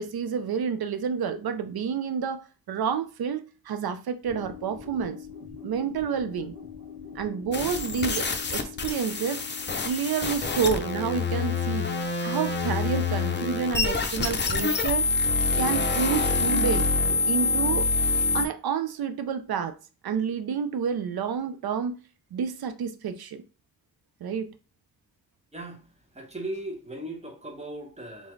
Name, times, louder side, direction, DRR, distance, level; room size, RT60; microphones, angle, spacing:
voice 1, 0.0-5.2 5.6-6.5 7.1-8.3 8.5-9.4 9.8-11.9 12.2-15.1 15.5-16.9 17.2-17.9 18.3-19.7 20.0-22.0 22.3-23.4 24.2-24.5, right 7 dB, 85° right, 0.5 m, -29 dB
sound 1, 4.2-10.8, left 7 dB, 60° right, 1.5 m, -44 dB
sound 2, 7.5-18.5, left 4 dB, 30° left, 0.6 m, -26 dB
voice 2, 26.1-28.3, right 1 dB, 20° right, 0.9 m, -37 dB
3.9 x 3.5 x 3.1 m
wide cardioid pair, 160°, 36 cm